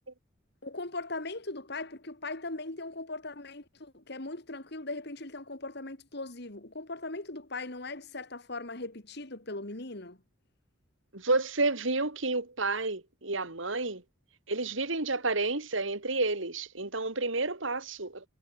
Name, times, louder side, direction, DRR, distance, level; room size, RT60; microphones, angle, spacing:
voice 1, 0.6-10.2, left 2 dB, 55° left, 2.5 m, -39 dB
voice 2, 11.1-14.0 14.5-18.3, right 3 dB, 75° right, 3.5 m, -30 dB
head